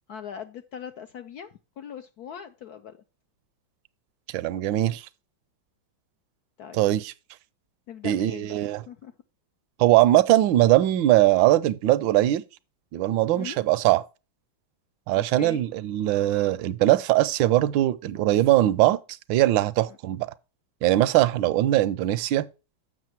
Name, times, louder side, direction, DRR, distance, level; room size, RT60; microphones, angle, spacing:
voice 1, 0.1-1.5 1.8-3.0 6.6-6.8 7.9-8.6 8.9-9.1 13.3-13.6 15.1-15.6 19.9-20.0, left 9 dB, 70° left, 0.9 m, -40 dB
voice 2, 4.3-5.0 6.7-7.1 8.0-8.8 9.8-12.4 12.9-14.0 15.1-19.0 19.3-20.3 20.8-22.5, right 15 dB, 75° right, 1.2 m, -21 dB
7.6 x 6.2 x 4.4 m
omnidirectional pair, 2.2 m